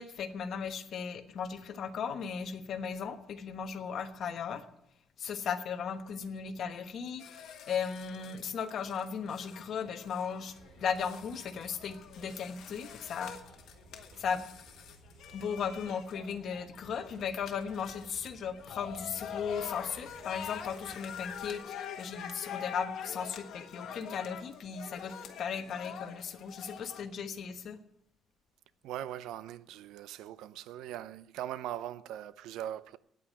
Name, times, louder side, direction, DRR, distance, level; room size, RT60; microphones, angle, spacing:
voice 1, 0.0-4.7 5.2-13.3 14.2-14.4 15.3-27.8, left 6 dB, 55° left, 1.2 m, -36 dB
sound 1, 7.2-27.0, left 8 dB, 70° left, 1.4 m, -45 dB
sound 2, 10.5-21.6, right 3 dB, 60° right, 2.3 m, -58 dB
voice 2, 28.8-33.0, right 12 dB, 90° right, 0.5 m, -40 dB
9.3 x 8.6 x 8.7 m
cardioid pair, 140°, 0 cm